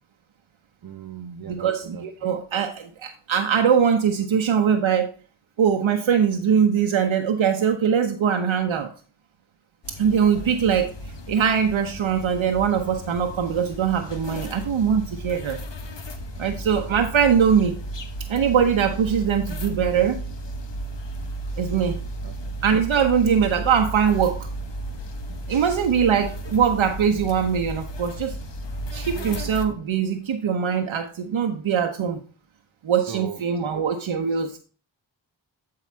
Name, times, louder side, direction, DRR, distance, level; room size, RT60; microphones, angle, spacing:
voice 1, 0.8-2.0 22.2-22.3 25.5-25.6 29.2-29.3 33.1-33.4 33.7-33.8, right 8 dB, 50° right, 8 dB, 0.7 m, -37 dB
voice 2, 1.5-5.1 5.6-8.9 10.0-10.9 11.3-15.6 16.4-17.8 18.3-20.2 21.6-22.0 22.6-24.5 25.5-28.3 28.9-32.2 32.8-34.6, right 7 dB, 75° right, 4 dB, 0.9 m, -22 dB
sound 1, 9.8-29.6, right 1 dB, 60° left, 1.3 m, -34 dB
8.4 x 4.8 x 4.4 m, 0.37 s
cardioid pair, 70°, 48 cm